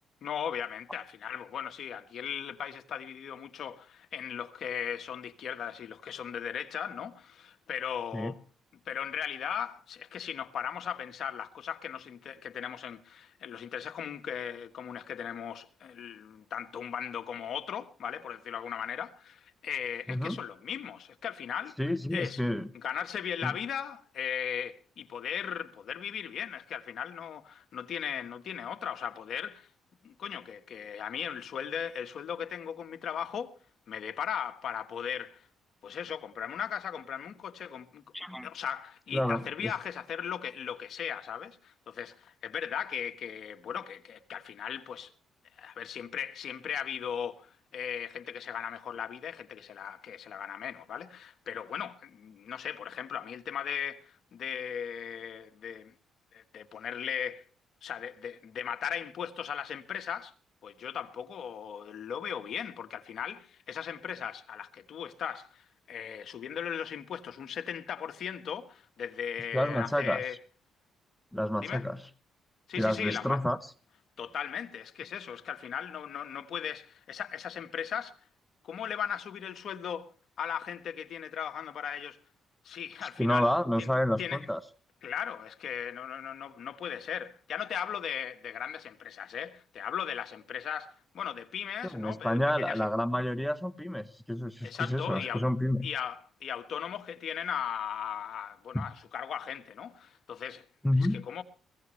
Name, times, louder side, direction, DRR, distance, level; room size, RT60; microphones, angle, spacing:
voice 1, 0.2-8.4 8.9-21.8 22.1-22.4 22.7-29.7 30.0-33.5 33.9-35.4 35.8-38.0 38.4-45.1 45.6-55.9 56.3-57.4 57.8-60.3 60.6-70.3 71.6-71.8 72.7-73.4 74.2-78.2 78.6-80.1 80.4-82.2 82.6-83.5 83.8-83.9 84.2-84.4 85.0-92.8 94.6-95.4 95.8-100.6 101.1-101.4, left 8 dB, 60° left, 1.4 m, -37 dB
voice 2, 20.1-20.4 21.8-22.7 23.4-23.5 38.1-38.5 39.1-39.7 69.5-70.2 71.3-72.0 72.8-73.6 83.2-84.6 91.8-95.9 98.7-98.9 100.8-101.2, left 1 dB, 5° left, 0.8 m, -29 dB
22.0 x 16.0 x 3.2 m
cardioid pair, 90°, 0 cm